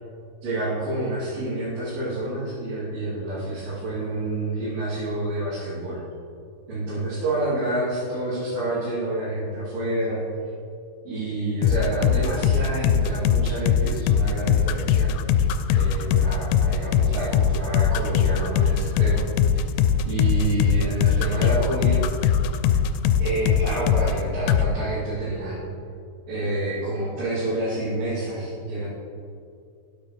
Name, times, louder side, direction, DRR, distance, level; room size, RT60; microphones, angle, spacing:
voice 1, 0.4-6.0 6.7-10.2 11.0-15.1 15.7-19.2 20.0-22.0 23.2-25.7 26.3-28.9, right 2 dB, 80° right, -12 dB, 5.1 m, -28 dB
sound 1, 11.6-24.2 24.5-24.7, left 8 dB, 85° left, 2.7 m, -20 dB
12.5 x 9.5 x 3.3 m, 2.4 s
omnidirectional pair, 4.8 m